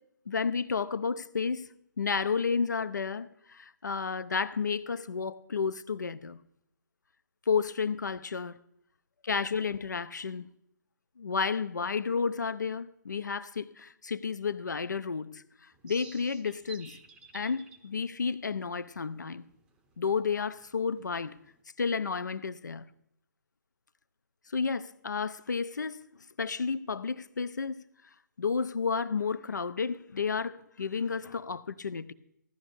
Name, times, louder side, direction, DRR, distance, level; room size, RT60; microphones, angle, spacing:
voice 1, 0.3-1.7 2.0-6.4 7.5-8.6 9.2-10.5 11.2-15.4 15.8-17.0 17.3-19.5 20.0-21.4 21.8-22.9 24.5-26.0 26.4-27.8 28.4-32.1, left 5 dB, 70° left, 0.5 m, -31 dB
sound 1, 15.7-21.6, right 4 dB, 10° right, 0.7 m, -54 dB
16.0 x 11.5 x 2.6 m
figure-of-eight pair, 135°, 10 cm